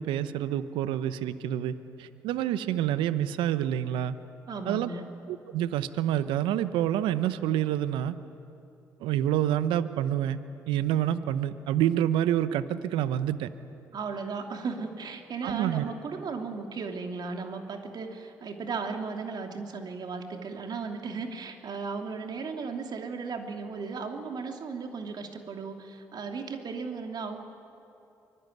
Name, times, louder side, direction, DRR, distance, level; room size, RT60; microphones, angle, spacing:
voice 1, 0.0-4.1 4.7-4.9 5.3-8.2 9.0-10.4 10.7-13.5 15.4-15.9, right 11 dB, 75° right, 13 dB, 0.9 m, -27 dB
voice 2, 4.5-5.0 13.9-27.4, right 4 dB, 55° right, 4 dB, 2.9 m, -36 dB
24.0 x 21.0 x 9.4 m, 2.7 s
hypercardioid pair, 50°, 8 cm